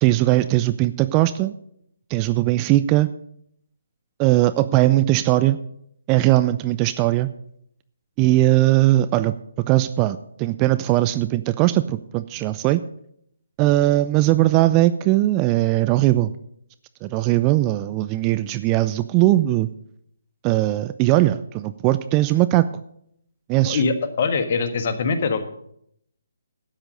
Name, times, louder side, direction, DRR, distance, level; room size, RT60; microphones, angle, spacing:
voice 1, 0.0-1.5 2.1-3.1 4.2-5.6 6.1-7.3 8.2-9.3 9.7-12.8 13.6-16.3 17.0-19.7 20.4-22.7 23.5-23.8, right 16 dB, 25° right, 14 dB, 0.4 m, -19 dB
voice 2, 23.6-25.5, left 4 dB, 45° left, 8 dB, 1.5 m, -23 dB
12.5 x 8.9 x 5.2 m, 0.70 s
figure-of-eight pair, 140°, 0 cm